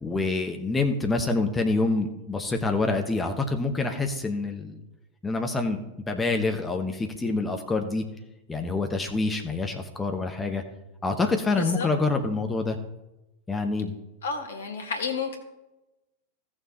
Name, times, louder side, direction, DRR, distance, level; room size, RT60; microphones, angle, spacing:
voice 1, 0.0-4.8 5.2-8.0 8.5-10.6 11.0-12.8 13.5-13.9, left 3 dB, 10° left, 4 dB, 1.1 m, -26 dB
voice 2, 11.6-11.9 14.2-15.4, left 5 dB, 65° left, 4 dB, 1.7 m, -31 dB
16.5 x 6.6 x 3.0 m, 0.99 s
figure-of-eight pair, 90°, 0 cm